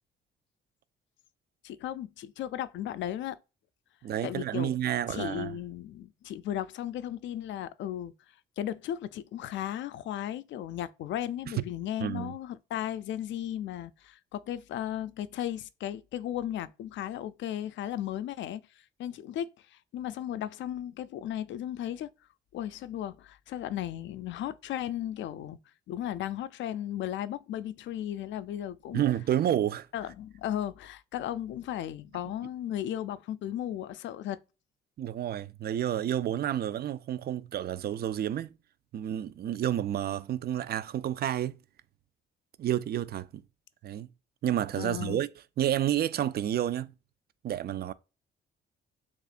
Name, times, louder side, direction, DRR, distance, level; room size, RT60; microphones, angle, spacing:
voice 1, 1.6-3.4 4.2-4.7 5.1-8.1 8.6-18.6 19.0-22.1 22.5-25.6 25.9-29.0 29.9-34.4 44.8-45.2, left 11 dB, 70° left, 0.4 m, -35 dB
voice 2, 4.0-5.6 11.5-11.6 12.0-12.3 28.9-29.9 32.2-32.3 35.0-38.5 38.9-41.6 42.6-43.4 43.8-44.1 44.4-45.3 45.6-46.9 47.4-47.9, right 11 dB, 55° right, 0.4 m, -30 dB
6.7 x 2.4 x 2.5 m
cardioid pair, 90°, 20 cm